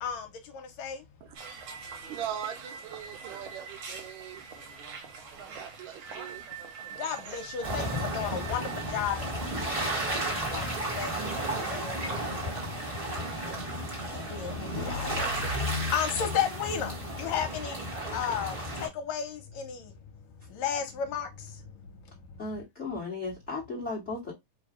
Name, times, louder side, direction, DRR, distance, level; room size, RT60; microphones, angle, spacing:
sound 1, 1.3-13.4, right 6 dB, 60° right, 1.5 m, -45 dB
voice 1, 2.1-4.4 5.5-6.5, right 10 dB, 80° right, 1.9 m, -40 dB
voice 2, 7.0-7.9 8.1-8.6 8.9-9.2 10.1-10.2 10.5-11.2 11.7-12.0 12.3-12.5 14.3-16.9 17.2-17.8 18.1-18.5 18.8-19.8 20.6-21.3, left 7 dB, 75° left, 1.9 m, -32 dB
sound 2, 7.6-18.9, right 1 dB, 30° right, 1.0 m, -33 dB
voice 3, 22.4-24.3, left 3 dB, 35° left, 1.1 m, -35 dB
4.7 x 2.2 x 4.8 m
omnidirectional pair, 3.4 m